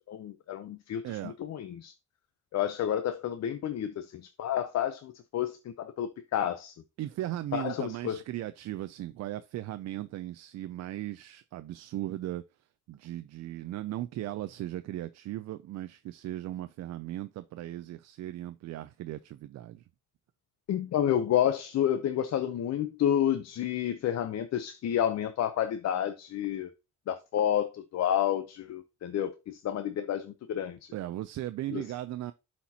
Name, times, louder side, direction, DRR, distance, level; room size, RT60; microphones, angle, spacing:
voice 1, 0.1-1.9 2.5-6.7 7.5-8.2 20.7-26.7 27.1-30.9 31.7-31.9, left 10 dB, 60° left, 0.7 m, -30 dB
voice 2, 1.0-1.3 7.0-12.4 12.9-19.8 30.9-32.3, right 14 dB, 60° right, 0.4 m, -37 dB
11.5 x 4.4 x 2.8 m
cardioid pair, 90°, 30 cm